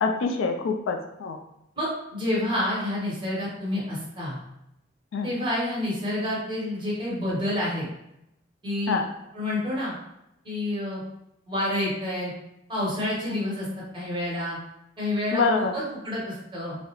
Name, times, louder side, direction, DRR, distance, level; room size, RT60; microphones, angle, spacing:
voice 1, 0.0-1.4 5.1-5.3 8.9-9.1 15.3-15.7, left 4 dB, 80° left, 4 dB, 0.3 m, -25 dB
voice 2, 1.8-4.4 5.2-7.9 8.6-9.0 9.3-9.9 10.4-11.0 11.5-12.3 12.7-14.6 15.0-16.8, left 1 dB, 25° right, -7 dB, 1.1 m, -28 dB
2.3 x 2.0 x 2.9 m, 0.83 s
head